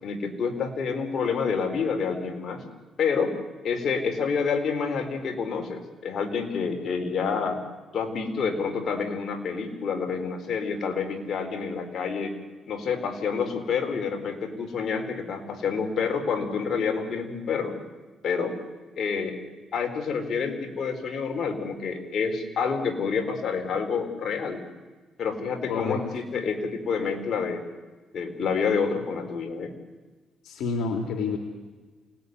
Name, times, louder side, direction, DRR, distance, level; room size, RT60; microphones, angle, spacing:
voice 1, 0.0-2.6 3.0-3.4 3.6-7.6 7.9-12.3 12.7-17.8 18.2-18.6 19.0-19.4 19.7-24.6 25.2-27.6 28.1-29.7, left 5 dB, 60° left, 5 dB, 4.5 m, -28 dB
voice 2, 25.7-26.0 30.4-31.4, left 4 dB, 85° left, 4 dB, 2.8 m, -28 dB
29.0 x 19.0 x 9.7 m, 1.3 s
cardioid pair, 90°, 0 cm